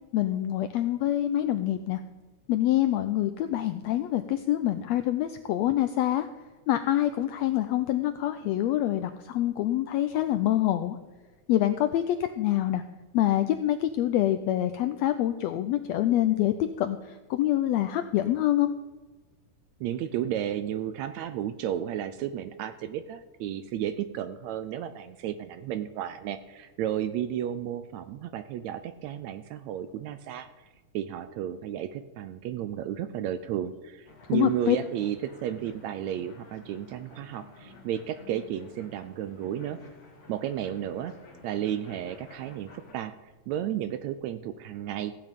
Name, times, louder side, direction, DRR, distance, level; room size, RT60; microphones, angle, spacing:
voice 1, 0.1-2.0 2.5-6.3 6.7-11.0 11.5-12.8 13.1-17.0 17.3-18.7 34.3-34.8, left 13 dB, 85° left, 9 dB, 1.5 m, -26 dB
voice 2, 19.8-30.7 30.9-39.8 40.3-41.2 41.4-43.1 43.5-45.1, right 10 dB, 80° right, 12 dB, 1.7 m, -33 dB
sound 1, 34.1-42.9, left 3 dB, 35° left, 1.9 m, -52 dB
16.0 x 8.6 x 5.2 m, 1.3 s
omnidirectional pair, 3.6 m